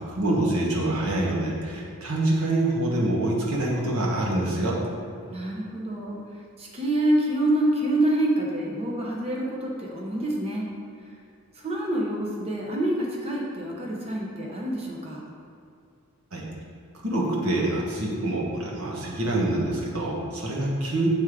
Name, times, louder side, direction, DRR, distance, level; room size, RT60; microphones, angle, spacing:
voice 1, 0.1-4.7 16.3-16.5 17.0-21.1, right 1 dB, 80° right, -3 dB, 1.3 m, -26 dB
voice 2, 5.3-6.2 6.6-10.7 11.5-15.2, right 1 dB, 30° right, -3 dB, 0.8 m, -26 dB
7.3 x 3.5 x 4.7 m, 2.4 s
head